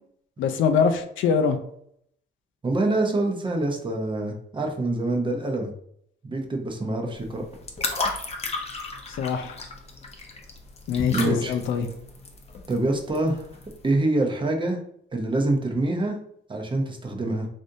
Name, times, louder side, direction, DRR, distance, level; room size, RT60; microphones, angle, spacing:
voice 1, 0.4-1.6 9.2-9.6 10.9-11.9, left 6 dB, 75° left, 7 dB, 0.5 m, -23 dB
voice 2, 2.6-5.7 6.2-7.4 11.1-11.6 12.7-13.4 13.8-14.8 15.1-16.2 16.5-17.5, right 2 dB, 25° right, 2 dB, 0.7 m, -25 dB
sound 1, 7.1-13.9, left 3 dB, 30° left, 0.7 m, -34 dB
3.4 x 2.6 x 2.6 m, 0.68 s
cardioid pair, 90°, 20 cm